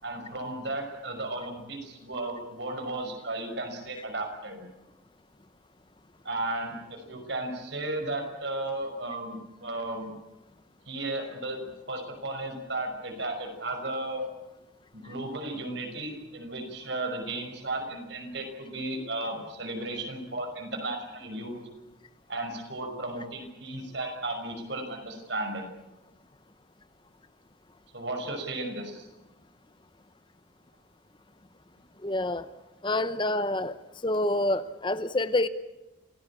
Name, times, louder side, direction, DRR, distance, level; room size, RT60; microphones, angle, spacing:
voice 1, 0.0-4.7 6.2-10.2 10.9-14.3 14.9-21.6 22.3-25.7 27.9-29.1, right 2 dB, 65° right, 5 dB, 5.7 m, -34 dB
voice 2, 32.0-32.5 32.8-33.7 34.0-35.5, left 1 dB, 25° left, 13 dB, 0.8 m, -27 dB
26.5 x 17.5 x 8.6 m, 1.0 s
head